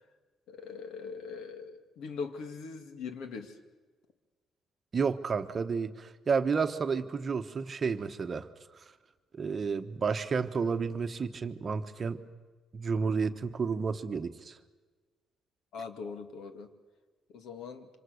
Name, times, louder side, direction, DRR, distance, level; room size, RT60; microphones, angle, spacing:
voice 1, 0.5-3.6 15.7-16.7 17.3-17.9, left 5 dB, 75° left, 7 dB, 2.3 m, -41 dB
voice 2, 4.9-8.5 9.3-12.2 12.7-14.6, right 5 dB, 30° right, 8 dB, 1.0 m, -31 dB
26.5 x 26.0 x 6.5 m, 1.3 s
cardioid pair, 155°, 0 cm